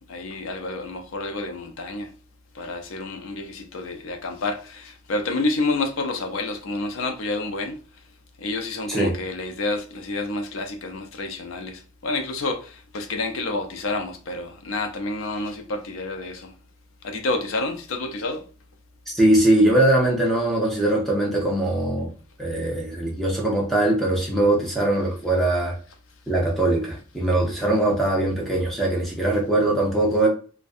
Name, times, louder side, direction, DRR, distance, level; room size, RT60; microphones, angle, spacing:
voice 1, 0.1-2.1 2.5-7.8 8.4-16.5 17.0-18.4, left 2 dB, 70° left, 0.5 m, -29 dB
voice 2, 19.1-22.1 22.4-25.7 26.3-30.3, right 1 dB, ahead, 0.6 m, -21 dB
2.5 x 2.2 x 2.4 m
head